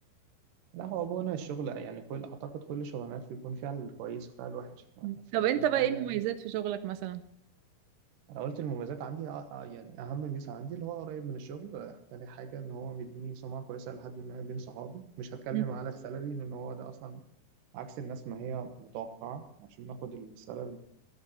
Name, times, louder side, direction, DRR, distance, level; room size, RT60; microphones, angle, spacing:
voice 1, 0.7-6.2 8.3-17.2 17.7-20.8, right 7 dB, 65° right, 8 dB, 2.5 m, -39 dB
voice 2, 5.0-7.2 15.5-15.7, right 12 dB, 85° right, 11 dB, 2.7 m, -30 dB
23.5 x 8.9 x 4.2 m, 0.68 s
omnidirectional pair, 4.6 m